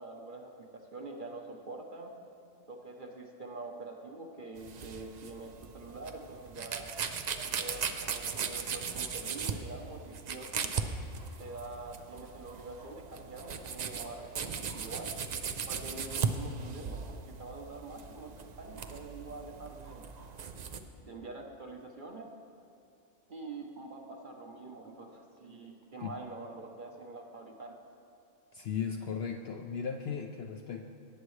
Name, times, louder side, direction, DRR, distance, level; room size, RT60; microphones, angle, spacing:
voice 1, 0.0-2.1 2.7-6.9 7.4-10.7 11.4-15.1 15.7-20.1 21.0-22.3 23.3-27.8, right 2 dB, 45° right, 2 dB, 0.9 m, -45 dB
sound 1, 4.6-20.8, right 6 dB, 75° right, 0.3 m, -38 dB
voice 2, 28.5-30.8, left 6 dB, 65° left, 4 dB, 0.6 m, -36 dB
18.0 x 8.2 x 3.2 m, 2.6 s
omnidirectional pair, 1.4 m